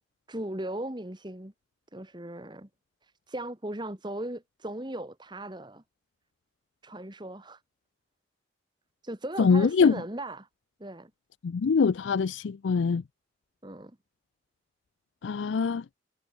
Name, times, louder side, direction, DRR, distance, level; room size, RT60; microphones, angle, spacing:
voice 1, 0.3-1.5 1.9-2.7 3.0-5.8 6.8-7.6 9.0-10.5 10.8-11.1 13.6-14.0, right 1 dB, 25° right, 2.0 m, -38 dB
voice 2, 9.4-10.0 11.4-13.0 15.2-15.8, left 5 dB, 85° left, 0.4 m, -23 dB
head